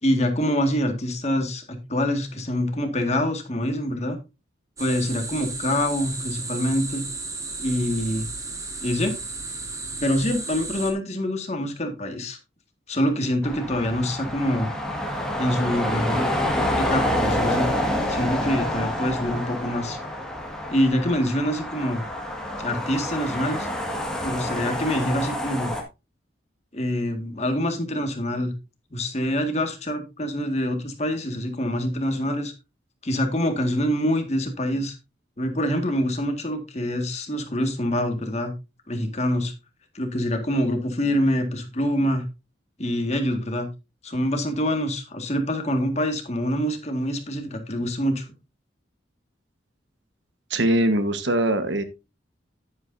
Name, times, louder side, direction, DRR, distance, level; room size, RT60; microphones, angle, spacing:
voice 1, 0.0-4.2 4.8-7.1 7.6-8.3 8.8-9.1 10.0-12.4 12.9-14.7 15.4-16.3 16.8-17.7 18.1-20.0 20.7-22.0 22.6-23.7 24.2-25.7 26.7-28.5 28.9-32.5 33.0-34.9 35.4-38.5 38.9-39.5 39.9-42.2 42.8-43.7 44.0-48.3, equal, 35° left, 5 dB, 1.8 m, -25 dB
sound 1, 4.8-10.9, right 3 dB, 15° right, 1.7 m, -34 dB
sound 2, 13.4-25.8, left 1 dB, 5° left, 1.7 m, -28 dB
voice 2, 50.5-51.8, right 1 dB, 75° right, 10 dB, 1.2 m, -22 dB
10.5 x 9.5 x 2.6 m, 0.26 s
head